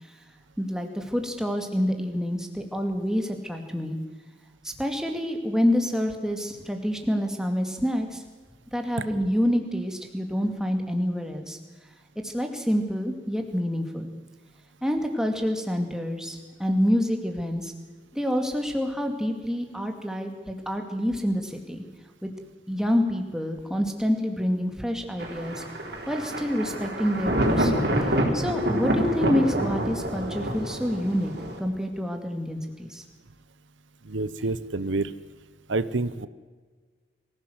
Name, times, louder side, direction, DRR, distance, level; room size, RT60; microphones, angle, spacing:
voice 1, 0.6-4.0 4.6-8.2 8.7-11.6 12.2-14.1 14.8-17.7 18.1-21.8 22.2-22.3 22.7-25.6 26.1-27.7 28.3-31.3 31.6-33.0, equal, 5° right, 4 dB, 2.3 m, -27 dB
Thunder, 25.2-31.6, equal, 60° right, 4.2 m, -27 dB
voice 2, 34.0-35.1 35.7-36.3, right 3 dB, 90° right, 14 dB, 0.9 m, -28 dB
24.0 x 16.0 x 8.0 m, 1.5 s
head